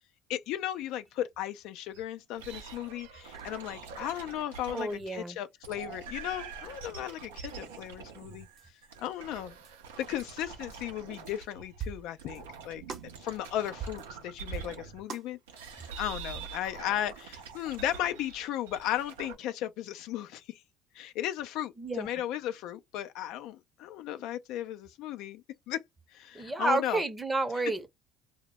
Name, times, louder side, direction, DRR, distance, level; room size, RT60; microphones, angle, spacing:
voice 1, 0.3-8.5 9.0-9.6 10.0-12.8 13.2-20.6 20.9-25.8 26.1-27.0, left 12 dB, 70° left, 0.3 m, -35 dB
sound 1, 1.9-2.0 2.4-5.2 5.6-11.8 12.1-15.0 15.5-19.4, right 6 dB, 85° right, 0.5 m, -45 dB
voice 2, 4.7-5.4 21.8-22.1 26.4-27.9, right 3 dB, 20° right, 0.6 m, -31 dB
sound 2, 7.5-7.6 8.6-8.7 9.6-9.7 10.2-10.3 10.7-10.8 11.2-11.3 11.8-12.4 12.9-13.2 13.4-13.5 13.8-14.2 14.5-15.3 15.6-15.7, right 6 dB, 55° right, 0.8 m, -41 dB
2.0 x 2.0 x 3.3 m
hypercardioid pair, 65°, 0 cm